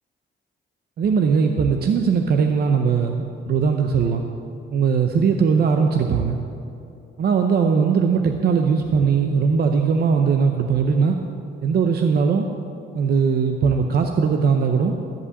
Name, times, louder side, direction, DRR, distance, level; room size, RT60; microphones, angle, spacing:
voice 1, 1.0-4.2 4.7-6.4 7.2-11.2 11.6-12.5 12.9-14.9, right 5 dB, 50° right, 5 dB, 0.7 m, -19 dB
13.5 x 5.6 x 8.5 m, 2.8 s
cardioid pair, 145°, 20 cm